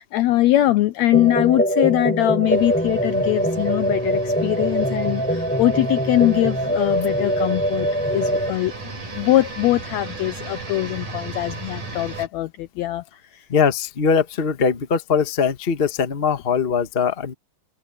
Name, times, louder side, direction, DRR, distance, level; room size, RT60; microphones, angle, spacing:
voice 1, 0.0-13.5, left 15 dB, 85° left, 1.6 m, -22 dB
sound 1, 1.1-8.5, equal, 5° left, 3.0 m, -23 dB
sound 2, 2.5-12.3, right 3 dB, 75° right, 7.9 m, -35 dB
voice 2, 13.5-17.3, left 6 dB, 70° left, 0.5 m, -21 dB
omnidirectional pair, 3.7 m